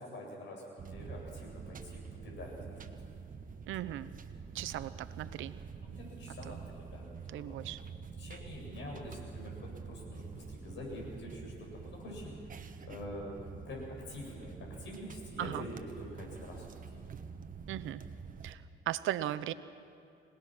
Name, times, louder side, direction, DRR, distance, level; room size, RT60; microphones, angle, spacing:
voice 1, 0.0-2.9 5.8-7.6 8.2-12.4 12.8-13.4 13.6-16.7 16.9-17.0, left 1 dB, 70° left, -1 dB, 7.4 m, -46 dB
sound 1, 0.8-18.5, right 5 dB, 45° right, 1.1 m, -47 dB
voice 2, 3.7-4.1 4.5-5.5 6.4-6.6 7.3-7.8 15.4-15.7 17.7-18.0 18.4-19.5, right 13 dB, 85° right, 15 dB, 0.8 m, -37 dB
25.5 x 19.0 x 6.1 m, 2.5 s
cardioid pair, 90°, 20 cm